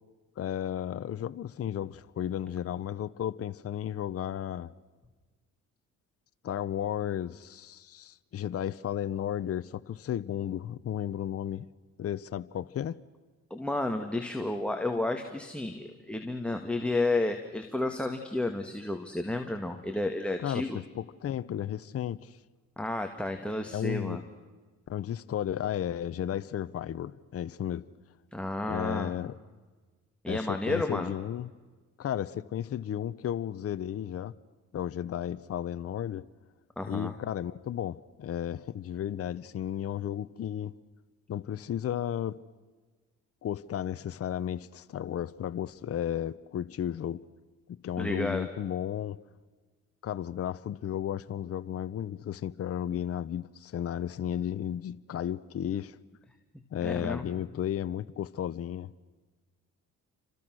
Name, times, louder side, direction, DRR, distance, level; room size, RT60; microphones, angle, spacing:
voice 1, 0.4-4.7 6.4-11.7 12.0-13.0 20.4-22.4 23.7-24.2 24.9-27.9 28.7-29.3 30.3-31.5 32.0-34.3 34.7-36.2 36.9-40.7 41.3-42.4 43.4-47.2 47.7-49.2 50.0-56.0 56.7-58.9, left 10 dB, 50° left, 0.8 m, -34 dB
voice 2, 13.5-20.8 22.8-24.2 28.3-29.1 30.2-31.1 36.8-37.1 48.0-48.5 56.8-57.2, left 2 dB, 5° left, 2.1 m, -31 dB
29.5 x 25.5 x 6.3 m
cardioid pair, 90°, 30 cm